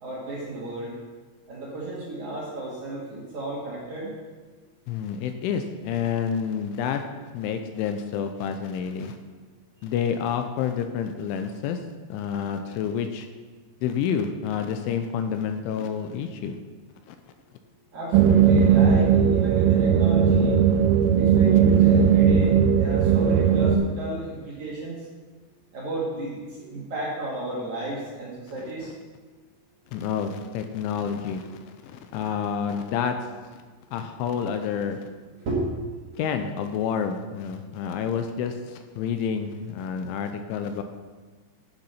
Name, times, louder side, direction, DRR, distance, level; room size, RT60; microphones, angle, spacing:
voice 1, 0.0-0.9 1.5-4.1 17.9-20.6 21.1-25.0 25.7-28.9 35.4-35.6, right 2 dB, 55° right, -6 dB, 2.3 m, -33 dB
voice 2, 4.9-7.0 7.3-9.2 9.8-11.8 12.1-13.3 13.8-16.6 17.1-17.2 28.8-28.9 29.9-33.2 33.9-35.0 36.2-40.8, left 7 dB, 80° left, 7 dB, 3.0 m, -29 dB
sound 1, 18.1-23.8, right 7 dB, 85° right, 3.1 m, -18 dB
9.5 x 7.3 x 5.7 m, 1.4 s
omnidirectional pair, 5.7 m